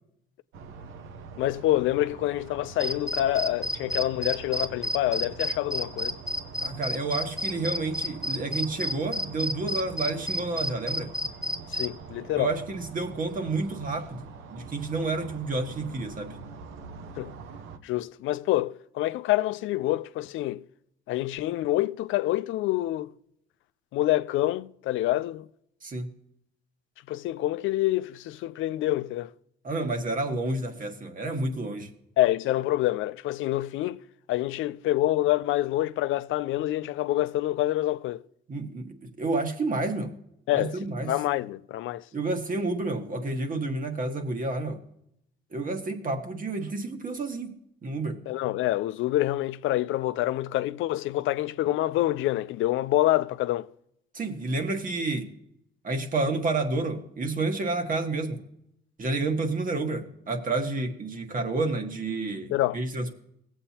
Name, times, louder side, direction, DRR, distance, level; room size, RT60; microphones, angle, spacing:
sound 1, 0.5-17.8, right 5 dB, 85° right, 0.8 m, -44 dB
voice 1, 1.4-6.2 11.7-12.5 17.2-17.3 17.8-20.6 21.1-23.1 23.9-25.5 27.1-29.3 32.2-34.0 34.3-38.2 40.5-40.8 41.0-42.0 48.3-53.7 62.5-62.8, left 15 dB, 80° left, 0.4 m, -27 dB
sound 2, 2.8-11.9, left 1 dB, 5° right, 1.5 m, -30 dB
voice 2, 6.6-11.1 12.3-16.3 25.8-26.1 29.6-31.9 38.5-40.1 40.5-41.1 42.1-44.8 45.5-47.5 47.8-48.2 54.1-55.3 55.8-58.4 59.0-63.2, right 3 dB, 45° right, 1.5 m, -30 dB
17.0 x 7.9 x 2.8 m
cardioid pair, 90°, 20 cm